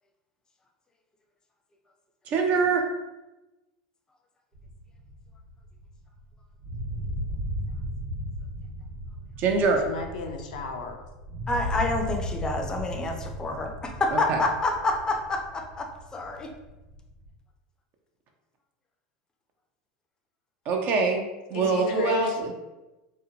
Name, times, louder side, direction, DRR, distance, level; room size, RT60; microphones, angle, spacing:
voice 1, 2.3-2.8 9.4-9.8 14.1-14.4 20.7-21.2 21.5-22.5, right 4 dB, 45° right, 2 dB, 0.5 m, -24 dB
sound 1, 4.5-6.3 6.6-17.3, equal, 75° right, 1.1 m, -36 dB
voice 2, 9.8-11.0 21.5-22.4, left 4 dB, 85° left, 2 dB, 0.4 m, -33 dB
voice 3, 11.5-16.5, left 2 dB, 20° left, 3 dB, 0.4 m, -28 dB
2.6 x 2.1 x 2.7 m, 1.1 s
supercardioid pair, 110°, 4 cm